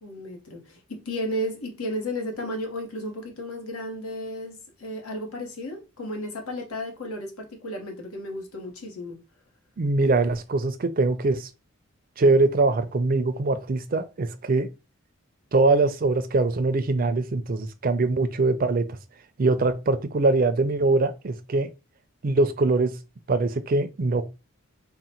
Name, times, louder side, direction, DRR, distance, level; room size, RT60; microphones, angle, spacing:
voice 1, 0.0-9.2, left 1 dB, 80° left, 1.1 m, -33 dB
voice 2, 9.8-11.5 12.2-14.7 15.5-18.9 19.4-21.7 22.2-23.0 23.3-24.3, right 3 dB, 40° right, 0.4 m, -22 dB
3.8 x 2.1 x 4.3 m
head